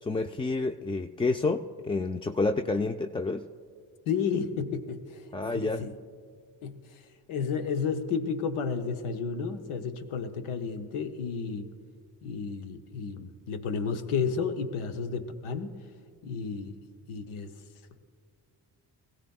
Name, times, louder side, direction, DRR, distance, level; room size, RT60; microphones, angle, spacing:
voice 1, 0.0-3.5 5.3-5.9, left 3 dB, 10° left, 6 dB, 0.3 m, -29 dB
voice 2, 4.1-5.3 5.5-5.9 6.6-6.8 7.3-11.7 12.2-15.8 16.2-16.8 17.1-17.5, left 5 dB, 85° left, 8 dB, 0.8 m, -32 dB
21.0 x 16.0 x 2.3 m, 2.1 s
supercardioid pair, 40°, 49 cm